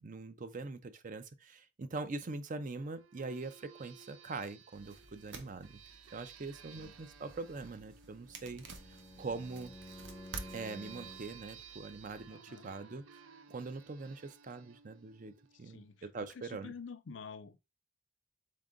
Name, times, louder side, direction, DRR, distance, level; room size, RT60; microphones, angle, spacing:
voice 1, 0.0-5.8 6.1-9.7 10.5-13.2 13.5-16.7, right 3 dB, 40° right, 0.5 m, -43 dB
sound 1, 2.7-15.9, right 8 dB, 90° right, 0.5 m, -57 dB
sound 2, 4.7-12.3, right 2 dB, 70° right, 0.9 m, -53 dB
Bowed string instrument, 8.3-11.4, left 2 dB, 15° left, 0.6 m, -52 dB
voice 2, 12.3-12.7 15.5-17.6, left 5 dB, 65° left, 0.5 m, -49 dB
3.7 x 3.7 x 3.7 m
head